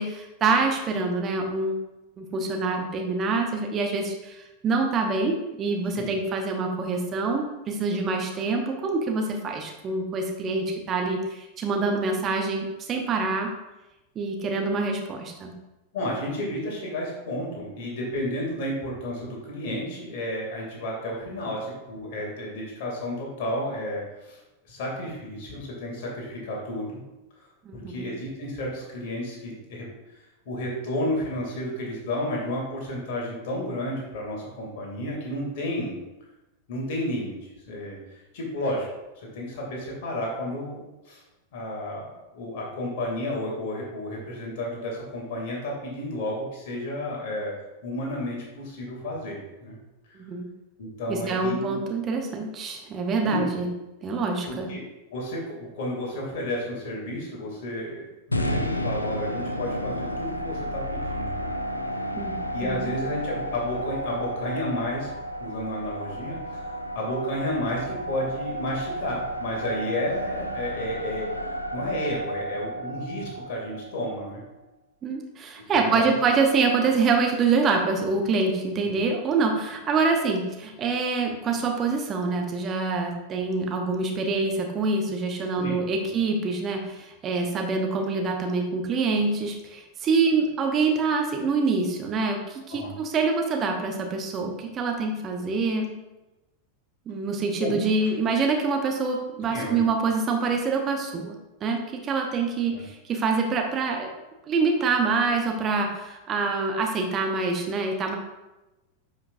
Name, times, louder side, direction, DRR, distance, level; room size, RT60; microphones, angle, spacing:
voice 1, 0.0-1.8 2.2-13.5 14.1-15.5 27.7-28.1 50.1-50.5 51.1-53.7 54.0-54.7 62.1-62.4 62.6-62.9 75.0-95.9 97.1-104.1 104.5-108.2, right 4 dB, 25° right, 3 dB, 0.9 m, -26 dB
voice 2, 15.9-27.0 27.4-27.5 27.7-29.9 30.5-36.0 36.7-37.3 37.7-38.0 38.3-38.9 39.2-40.8 41.0-41.2 41.5-42.1 42.3-47.5 47.8-49.8 50.1-50.2 50.8-51.8 53.2-53.5 54.5-54.8 55.1-61.5 62.5-65.1 65.4-74.4 75.7-76.1 78.8-79.0 85.6-85.8 92.7-92.9 97.6-97.7 99.5-99.8 102.7-102.8, left 1 dB, 50° left, -2 dB, 2.6 m, -32 dB
sound 1, 58.3-74.5, equal, 80° left, 0.5 m, -32 dB
9.9 x 5.6 x 2.6 m, 1.0 s
figure-of-eight pair, 90°, 0 cm